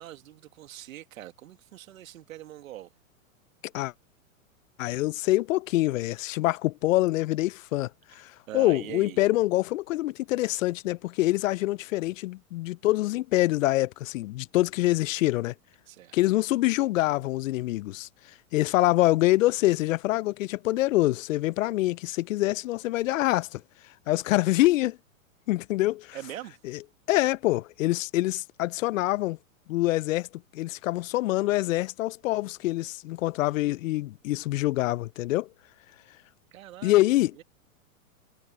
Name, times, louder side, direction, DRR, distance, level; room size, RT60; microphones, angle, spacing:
voice 1, 0.0-2.9 8.5-9.2 15.9-16.2 26.1-26.6 36.5-37.4, right 13 dB, 70° right, 2.0 m, -42 dB
voice 2, 4.8-15.5 16.1-18.1 18.5-23.6 24.1-25.0 25.5-26.2 26.6-26.8 27.1-29.4 29.7-30.3 30.5-35.5 36.8-37.3, left 17 dB, 65° left, 0.5 m, -25 dB
hypercardioid pair, 120°, 42 cm